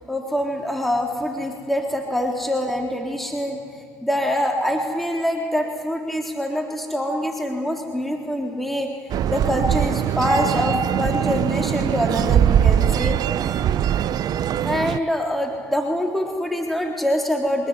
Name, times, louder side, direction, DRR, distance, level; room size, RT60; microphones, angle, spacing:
voice 1, 0.1-3.6 4.0-8.9 9.3-13.2 13.4-13.6 14.6-17.7, equal, ahead, 1 dB, 3.7 m, -24 dB
sound 1, 9.1-15.0, right 10 dB, 55° right, 0.7 m, -21 dB
24.0 x 20.0 x 9.8 m, 2.1 s
hypercardioid pair, 60°, 8 cm